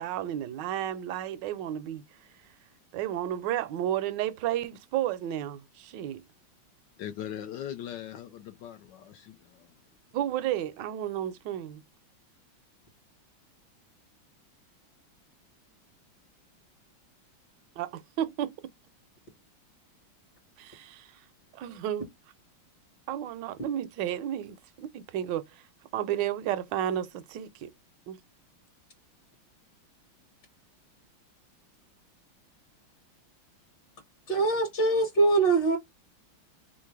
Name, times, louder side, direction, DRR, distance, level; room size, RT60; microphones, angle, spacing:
voice 1, 0.0-2.0 2.9-6.2 10.1-11.8 17.8-18.5 20.6-21.1 21.6-22.1 23.1-25.6 25.9-27.7 28.1-28.2, right 11 dB, 70° right, 1.1 m, -32 dB
voice 2, 7.0-9.7, left 10 dB, 75° left, 1.1 m, -40 dB
voice 3, 34.3-35.8, right 3 dB, 55° left, 1.8 m, -23 dB
3.9 x 2.4 x 4.6 m
omnidirectional pair, 2.3 m